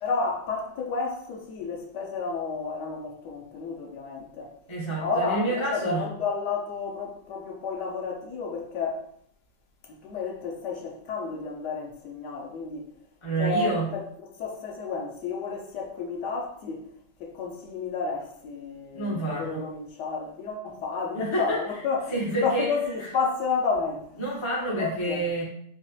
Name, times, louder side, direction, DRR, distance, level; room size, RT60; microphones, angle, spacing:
voice 1, 0.0-4.5 5.0-9.1 9.9-12.9 13.4-14.0 14.3-16.8 17.2-24.2 24.8-25.2, left 4 dB, 70° left, 0 dB, 1.2 m, -31 dB
voice 2, 4.7-6.1 13.2-13.9 18.9-19.6 21.1-21.6 22.1-22.7 24.2-25.4, right 2 dB, 45° left, -6 dB, 0.4 m, -28 dB
4.2 x 2.5 x 2.2 m, 0.64 s
omnidirectional pair, 2.0 m